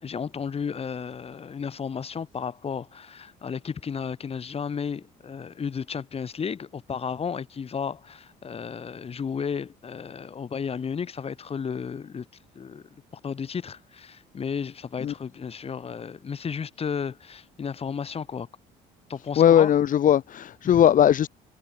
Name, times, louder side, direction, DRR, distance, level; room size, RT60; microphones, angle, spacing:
voice 1, 0.0-12.3 12.5-12.8 13.2-18.5 19.1-19.7 20.6-20.8, left 6 dB, 35° left, 4.3 m, -33 dB
voice 2, 19.4-21.3, left 10 dB, 50° left, 2.4 m, -19 dB
cardioid pair, 110°, 17 cm